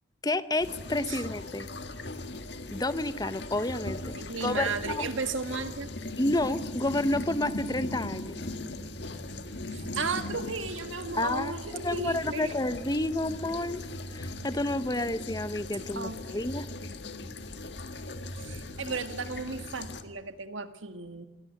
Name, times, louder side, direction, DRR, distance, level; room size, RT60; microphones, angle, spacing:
voice 1, 0.2-1.7 2.7-4.1 4.4-5.1 6.2-8.4 11.2-13.8 14.1-16.7, left 1 dB, 20° left, 13 dB, 0.8 m, -30 dB
sound 1, 0.6-20.0, left 2 dB, 60° left, 1.7 m, -39 dB
voice 2, 4.1-5.9 9.7-12.6 15.9-16.5 18.4-21.3, right 4 dB, 80° right, 9 dB, 1.8 m, -35 dB
24.0 x 17.5 x 9.9 m, 1.2 s
head